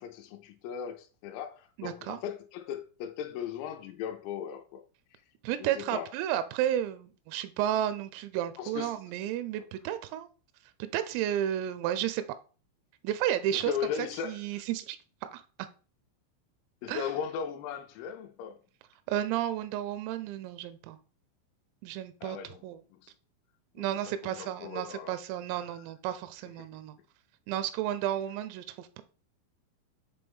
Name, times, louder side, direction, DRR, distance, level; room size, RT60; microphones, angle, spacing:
voice 1, 0.0-4.8 5.6-6.1 8.6-9.0 13.5-14.6 16.8-18.6 22.2-22.6 23.0-23.1 23.8-23.9 24.2-25.2 25.5-25.8 26.6-26.7, left 8 dB, 85° left, 3.4 m, -37 dB
voice 2, 1.8-2.2 5.4-10.3 10.8-12.2 13.0-13.7 14.0-15.0 15.3-15.4 16.9-17.1 19.1-21.0 21.8-22.8 23.8-27.0 27.5-29.0, right 11 dB, 90° right, 3.3 m, -32 dB
8.5 x 3.3 x 3.5 m
omnidirectional pair, 5.9 m